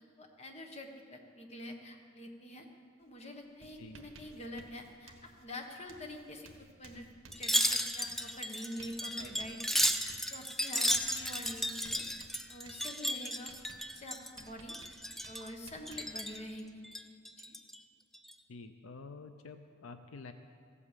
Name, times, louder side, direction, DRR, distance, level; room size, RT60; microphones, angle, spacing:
voice 1, 0.2-2.7 3.0-6.5 6.8-7.1 7.3-9.6 9.9-12.0 12.5-13.5 13.9-14.8 15.3-16.7 17.3-17.5, left 1 dB, 30° left, 3 dB, 1.3 m, -46 dB
Writing, 3.0-3.2 3.4-16.6, right 3 dB, 65° right, 1.4 m, -58 dB
Wind chime, 7.3-14.4 14.7-15.5 15.9-16.4 16.8-17.8 18.1-18.3, equal, ahead, 0.4 m, -34 dB
voice 2, 18.5-20.3, left 3 dB, 75° left, 8 dB, 0.6 m, -48 dB
15.0 x 8.5 x 7.4 m, 2.1 s
head